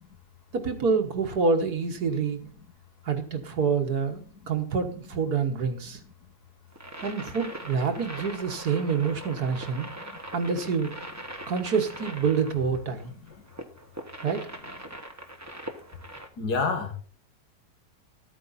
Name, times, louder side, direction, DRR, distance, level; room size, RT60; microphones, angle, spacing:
voice 1, 0.5-2.4 3.0-6.0 7.0-9.9 10.3-10.9 11.5-13.1 14.2-14.5, right 5 dB, 75° right, 4 dB, 1.8 m, -27 dB
sound 1, 6.7-16.3, right 1 dB, 10° right, 1.0 m, -41 dB
voice 2, 9.8-10.2 16.4-16.9, left 4 dB, 85° left, 6 dB, 2.3 m, -29 dB
12.5 x 8.9 x 4.1 m, 0.43 s
omnidirectional pair, 1.7 m